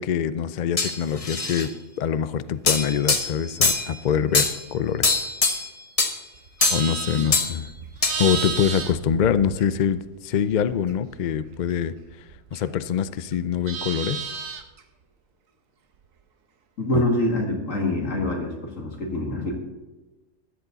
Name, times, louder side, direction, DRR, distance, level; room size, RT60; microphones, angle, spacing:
voice 1, 0.0-1.7 2.0-5.2 6.7-7.7 8.2-12.0 12.5-14.2 16.9-17.0, left 8 dB, 60° left, 14 dB, 0.5 m, -24 dB
sound 1, 0.8-1.7 2.7-3.9 4.3-4.6 5.0-5.7 6.0-6.1 6.6-7.0 7.3-7.5 8.0-8.2, left 3 dB, 30° left, 1.1 m, -22 dB
Livestock farm animals working animals, 6.3-10.1 10.4-12.9 13.2-14.8, right 6 dB, 90° right, 1.4 m, -34 dB
voice 2, 16.8-19.5, left 1 dB, 75° left, 1 dB, 2.4 m, -25 dB
14.0 x 10.5 x 4.0 m, 1.2 s
omnidirectional pair, 1.3 m